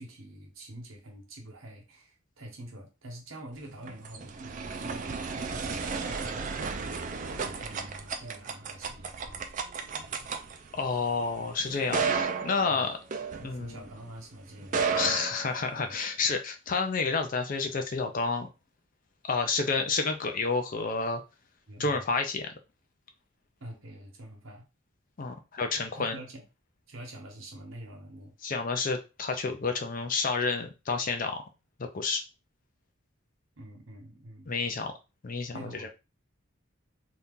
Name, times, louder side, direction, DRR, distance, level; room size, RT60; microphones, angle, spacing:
voice 1, 0.0-9.4 12.7-12.9 13.3-15.2 15.8-16.0 21.7-22.0 23.6-24.7 25.9-26.4 26.9-28.3 33.6-34.5 35.5-35.9, right 1 dB, 65° right, 1.1 m, -46 dB
sound 1, 3.6-14.0 14.6-16.1, right 5 dB, 35° right, 0.3 m, -34 dB
voice 2, 10.7-13.0 13.4-13.8 14.9-18.5 19.2-21.2 21.8-22.5 25.2-26.2 28.4-31.4 31.8-32.2 34.5-34.9 35.2-35.9, left 4 dB, 40° left, 0.4 m, -30 dB
2.8 x 2.4 x 3.6 m
head